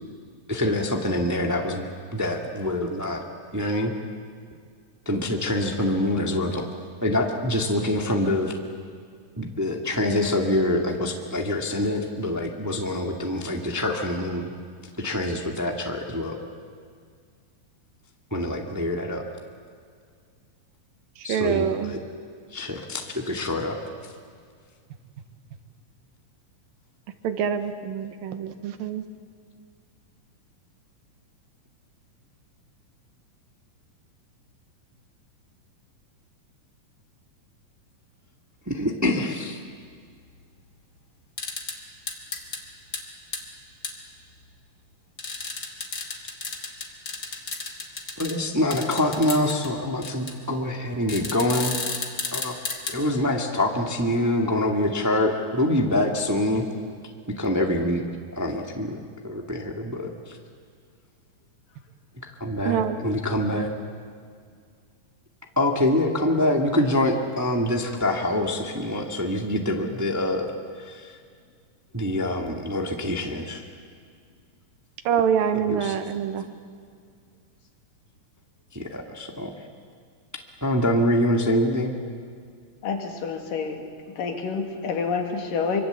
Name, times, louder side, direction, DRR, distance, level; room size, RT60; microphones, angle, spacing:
voice 1, 0.5-3.2 3.5-3.9 5.0-6.6 7.0-8.5 9.4-14.5 15.0-16.4 18.3-19.2 21.2-22.0 22.5-24.1 38.6-39.6 48.2-51.8 52.3-52.5 52.9-56.6 57.3-58.0 58.3-60.4 62.2-63.7 65.5-71.2 71.9-73.6 75.7-76.0 78.7-79.5 80.6-82.0, left 1 dB, 10° right, 2 dB, 0.9 m, -25 dB
voice 2, 21.2-22.0 27.2-29.0 62.7-63.0 63.5-63.7 75.0-76.5, right 8 dB, 85° right, 9 dB, 3.0 m, -26 dB
sound 1, 41.4-41.8 42.1-42.6 42.9-43.0 43.3-43.4 43.8-43.9 45.2-48.3 48.7-49.7 50.0-50.3 51.1-52.9, left 4 dB, 35° left, 2.4 m, -32 dB
voice 3, 82.8-83.8 84.2-85.8, left 5 dB, 75° left, 3 dB, 3.9 m, -28 dB
25.0 x 24.5 x 8.1 m, 2.1 s
omnidirectional pair, 4.0 m